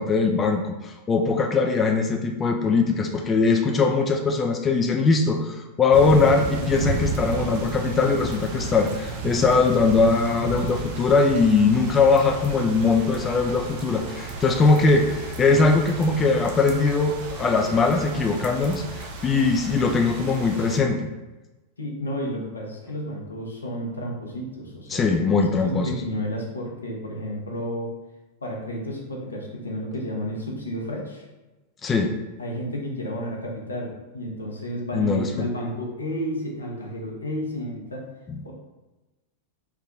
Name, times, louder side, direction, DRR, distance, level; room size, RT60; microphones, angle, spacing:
voice 1, 0.0-21.1 24.9-25.9 31.8-32.1 34.9-35.5 38.3-38.4, left 4 dB, 25° left, 3 dB, 0.3 m, -21 dB
sound 1, 5.9-20.8, right 4 dB, 60° right, 0.5 m, -33 dB
voice 2, 21.8-25.2 25.5-27.9 28.4-31.2 32.4-38.1 38.4-38.5, equal, 85° left, -1 dB, 0.7 m, -31 dB
3.4 x 2.1 x 3.7 m, 1.1 s
figure-of-eight pair, 95°, 0 cm